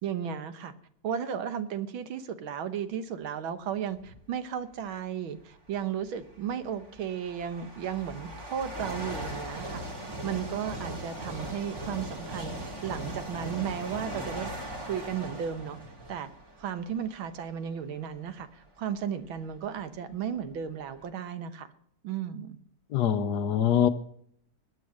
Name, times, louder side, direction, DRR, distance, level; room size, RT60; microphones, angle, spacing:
voice 1, 0.0-0.7 1.0-9.8 10.2-15.8 16.1-16.3 16.6-21.7 22.0-22.6, right 8 dB, 85° right, 1.9 m, -34 dB
sound 1, 4.0-4.3 5.4-5.5 6.3-17.7 18.3-18.4 19.2-19.3 19.5-21.1, right 1 dB, 35° right, 2.7 m, -39 dB
voice 2, 22.9-23.9, left 9 dB, 65° left, 1.2 m, -24 dB
20.5 x 8.5 x 6.4 m
omnidirectional pair, 2.2 m